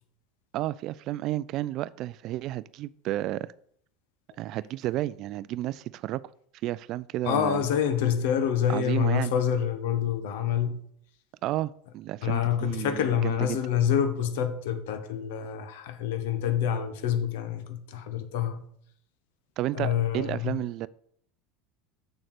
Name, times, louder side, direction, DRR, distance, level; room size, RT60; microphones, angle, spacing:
voice 1, 0.5-3.5 4.4-6.2 6.6-7.7 8.7-9.3 11.4-13.6 19.6-20.9, right 15 dB, 50° right, 0.4 m, -32 dB
voice 2, 7.2-10.8 12.2-18.6 19.7-20.6, left 9 dB, 65° left, 1.3 m, -27 dB
7.0 x 6.5 x 6.6 m
hypercardioid pair, 75°, 0 cm